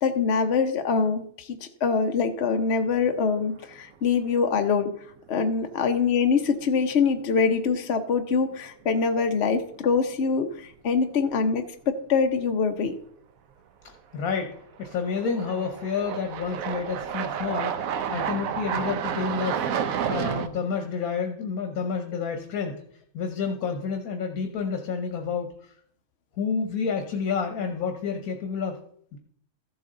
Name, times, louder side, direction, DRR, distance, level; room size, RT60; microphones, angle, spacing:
voice 1, 0.0-4.9 5.3-12.9, left 5 dB, 50° left, 6 dB, 1.1 m, -24 dB
sound 1, 2.5-3.2 3.5-3.6 6.5-6.6 8.0-8.2 8.5-8.6 14.0-14.1 14.8-20.5, right 8 dB, 75° right, 1.2 m, -30 dB
voice 2, 13.8-19.7 20.1-22.8 23.1-25.7 26.4-28.8 29.1-29.2, left 5 dB, 80° left, 4 dB, 1.5 m, -29 dB
14.0 x 7.8 x 3.8 m, 0.64 s
omnidirectional pair, 1.5 m